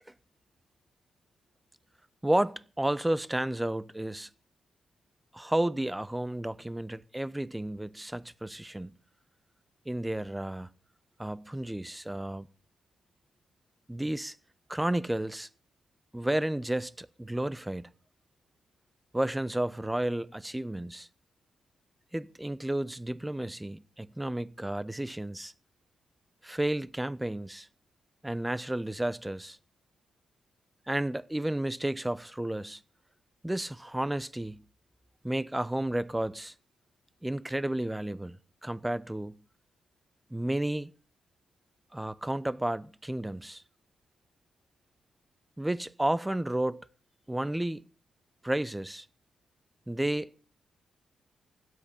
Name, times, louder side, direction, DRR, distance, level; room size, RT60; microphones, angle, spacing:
voice 1, 2.2-4.3 5.3-8.9 9.9-10.7 11.2-12.5 13.9-14.4 14.7-15.5 16.1-17.9 19.1-21.1 22.1-25.5 26.4-27.7 28.2-29.6 30.9-32.8 33.4-34.6 35.2-36.5 37.2-39.4 40.3-40.9 41.9-43.6 45.6-46.8 47.3-47.8 48.4-49.1 49.9-50.3, right 1 dB, 10° right, 0.9 m, -32 dB
17.0 x 12.5 x 5.3 m
supercardioid pair, 50°, 0 cm